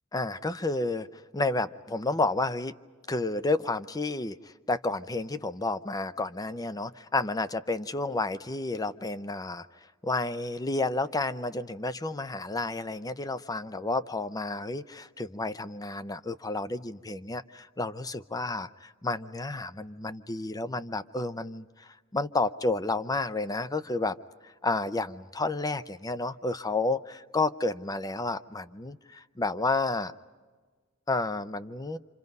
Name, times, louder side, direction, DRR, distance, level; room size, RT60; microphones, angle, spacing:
voice 1, 0.1-2.7 3.1-9.7 10.0-24.2 24.4-30.1 31.1-32.0, left 2 dB, 15° left, 13 dB, 0.6 m, -31 dB
27.5 x 27.5 x 5.4 m, 1.4 s
head